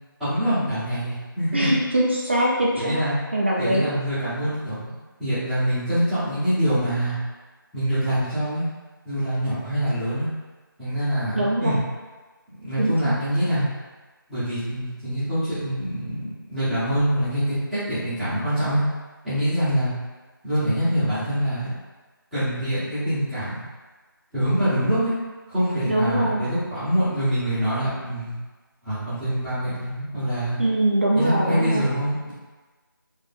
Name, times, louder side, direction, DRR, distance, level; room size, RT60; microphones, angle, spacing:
voice 1, 0.2-1.7 2.7-3.1 3.6-4.8 5.2-7.1 7.7-8.6 9.0-10.3 10.8-11.8 12.6-13.6 14.3-18.8 19.2-19.9 20.4-21.7 22.3-23.6 24.3-25.1 25.5-28.3 28.8-30.6 31.2-32.3, equal, ahead, -21 dB, 1.1 m, -25 dB
voice 2, 1.5-3.0 3.3-3.9 11.3-11.8 12.8-13.2 25.8-26.4 30.6-31.9, right 1 dB, 30° right, -4 dB, 0.5 m, -22 dB
3.5 x 3.0 x 4.1 m, 1.3 s
figure-of-eight pair, 170°, 12 cm